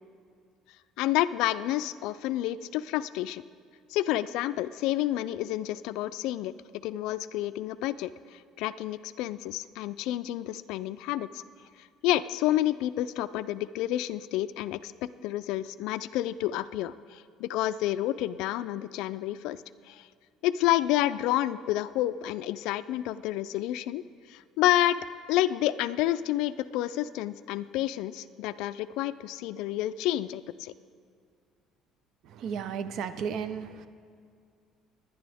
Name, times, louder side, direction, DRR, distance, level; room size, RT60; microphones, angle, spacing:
voice 1, 1.0-3.4 3.9-6.5 6.8-11.4 12.0-14.9 15.2-19.6 19.9-20.1 20.4-24.0 24.3-30.7, left 14 dB, 75° left, 11 dB, 0.3 m, -29 dB
voice 2, 32.3-33.9, right 7 dB, 60° right, 12 dB, 0.6 m, -34 dB
21.5 x 9.9 x 3.5 m, 2.2 s
cardioid pair, 145°, 0 cm